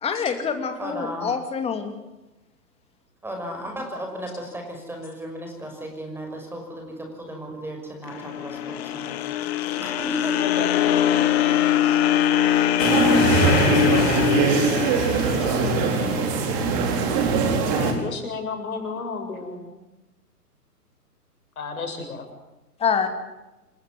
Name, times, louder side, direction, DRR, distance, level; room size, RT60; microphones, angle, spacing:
voice 1, 0.0-1.9 22.8-23.1, left 6 dB, 10° left, 7 dB, 2.7 m, -25 dB
voice 2, 0.8-1.3 3.2-9.2 9.8-10.6, right 1 dB, 5° right, 2 dB, 5.9 m, -35 dB
sound 1, 8.1-16.3, left 11 dB, 40° left, 2.3 m, -22 dB
voice 3, 10.4-10.7 17.7-19.6 21.6-22.3, left 4 dB, 60° left, 5 dB, 7.7 m, -32 dB
sound 2, 12.8-17.9, right 4 dB, 30° right, 4.6 m, -21 dB
28.0 x 16.0 x 9.6 m, 1.0 s
figure-of-eight pair, 120°, 48 cm